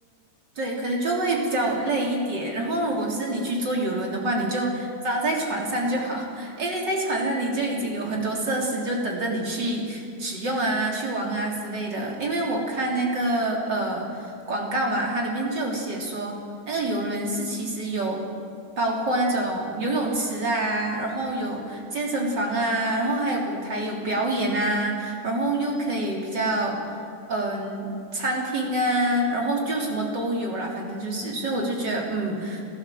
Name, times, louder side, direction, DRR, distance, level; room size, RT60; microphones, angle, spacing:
voice 1, 0.6-16.4 16.7-18.2 18.8-27.0 27.3-32.6, right 1 dB, 30° right, -1 dB, 3.3 m, -26 dB
27.5 x 15.0 x 7.7 m, 2.5 s
omnidirectional pair, 4.8 m